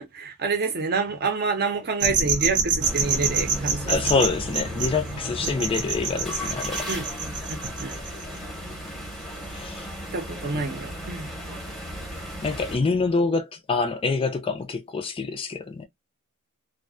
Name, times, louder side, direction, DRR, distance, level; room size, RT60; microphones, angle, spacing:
voice 1, 0.0-3.9 5.4-5.5 6.9-7.9 10.1-11.3, right 4 dB, 45° right, 0.7 m, -28 dB
sound 1, 2.0-8.2, right 5 dB, 75° right, 0.8 m, -27 dB
sound 2, 2.8-12.8, equal, ahead, 0.7 m, -36 dB
voice 2, 3.9-6.9 9.5-9.9 10.5-10.7 12.4-15.9, left 4 dB, 25° left, 0.3 m, -26 dB
2.4 x 2.1 x 2.4 m
head